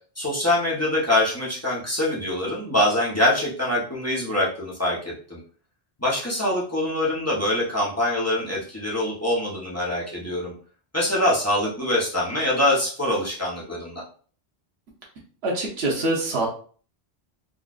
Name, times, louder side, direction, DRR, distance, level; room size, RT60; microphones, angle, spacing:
voice 1, 0.2-5.4 6.0-10.5 10.9-14.0, left 1 dB, 15° left, -6 dB, 0.9 m, -24 dB
voice 2, 15.4-16.5, right 2 dB, 75° right, -2 dB, 1.1 m, -24 dB
3.9 x 2.4 x 2.4 m, 0.43 s
omnidirectional pair, 1.1 m